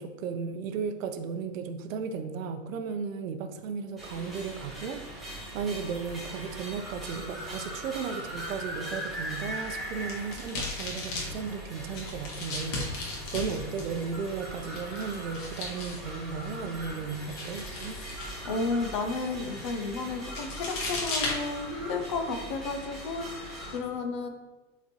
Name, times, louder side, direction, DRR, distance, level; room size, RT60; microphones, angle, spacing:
voice 1, 0.0-18.0, right 5 dB, 85° right, 7 dB, 0.8 m, -35 dB
sound 1, 4.0-23.8, right 1 dB, ahead, 1.2 m, -40 dB
sound 2, 9.7-22.1, left 2 dB, 75° left, 1.9 m, -38 dB
voice 2, 18.4-24.3, left 3 dB, 25° left, 5 dB, 0.4 m, -32 dB
8.2 x 4.3 x 2.9 m, 1.2 s
supercardioid pair, 165°, 39 cm